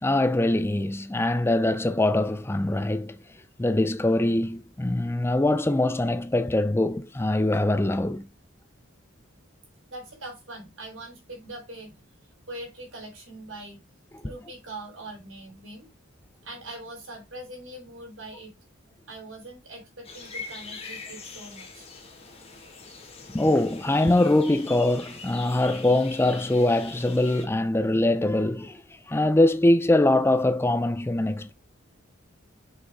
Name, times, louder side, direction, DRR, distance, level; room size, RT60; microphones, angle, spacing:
voice 1, 0.0-3.2 3.6-8.3 23.3-31.5, left 1 dB, 10° left, 0.4 m, -23 dB
voice 2, 9.9-12.0 12.5-13.8 14.2-15.9 16.4-18.5 19.1-21.9, right 1 dB, 70° right, 3.8 m, -42 dB
sound 1, 20.0-27.5, left 4 dB, 30° left, 1.7 m, -42 dB
6.2 x 5.2 x 3.5 m
head